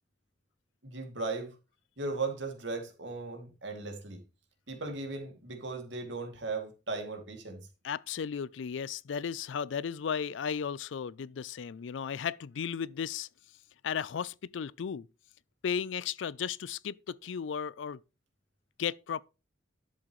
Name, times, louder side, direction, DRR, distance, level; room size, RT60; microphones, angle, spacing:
voice 1, 0.8-1.5 2.0-4.2 4.7-7.6, right 3 dB, 70° right, 2.5 m, -37 dB
voice 2, 7.8-13.3 13.8-15.1 15.6-18.0 18.8-19.2, left 7 dB, 75° left, 0.4 m, -35 dB
11.0 x 7.4 x 3.1 m
head